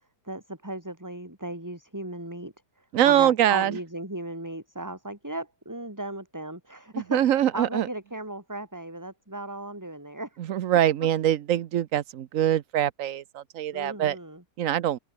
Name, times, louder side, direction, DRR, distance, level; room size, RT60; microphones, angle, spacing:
voice 1, 0.2-7.2 7.5-10.4 13.7-14.4, right 1 dB, 10° right, 4.0 m, -36 dB
voice 2, 2.9-3.8 7.1-7.9 10.4-14.2 14.6-15.0, right 11 dB, 60° right, 1.0 m, -23 dB
open air
omnidirectional pair, 1.8 m